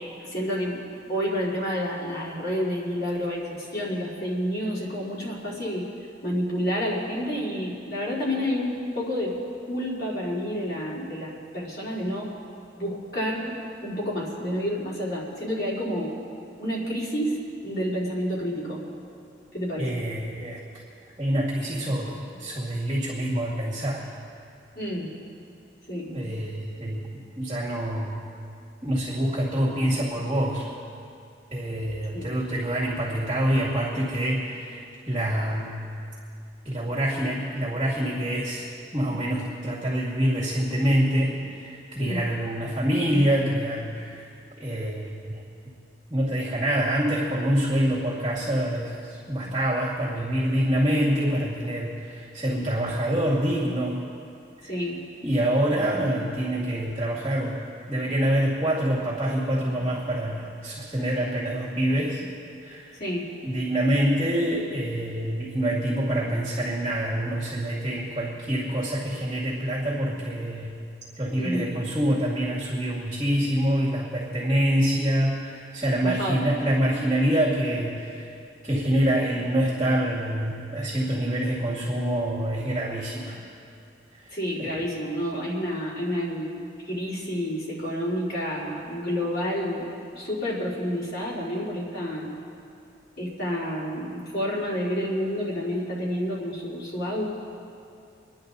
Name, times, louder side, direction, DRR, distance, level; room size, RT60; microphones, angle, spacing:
voice 1, 0.2-0.8 1.1-5.9 6.2-9.4 9.7-12.3 12.8-13.6 13.8-16.1 16.6-17.4 17.6-18.8 19.5-20.0 24.8-25.1 25.9-26.1 32.1-32.3 42.0-42.2 54.7-55.0 63.0-63.3 71.3-71.7 76.0-76.4 84.3-86.5 86.8-89.9 90.2-92.3 93.2-97.3, equal, 60° left, -7 dB, 4.1 m, -29 dB
voice 2, 19.8-20.6 21.2-24.1 26.1-27.1 27.4-28.2 28.8-30.7 31.5-35.8 36.6-44.3 44.6-45.4 46.1-54.0 54.6-54.7 55.2-62.2 62.6-62.9 63.4-70.7 71.2-78.3 78.6-83.4 84.2-84.8, right 1 dB, 25° right, -6 dB, 2.3 m, -26 dB
25.5 x 10.5 x 4.1 m, 2.5 s
head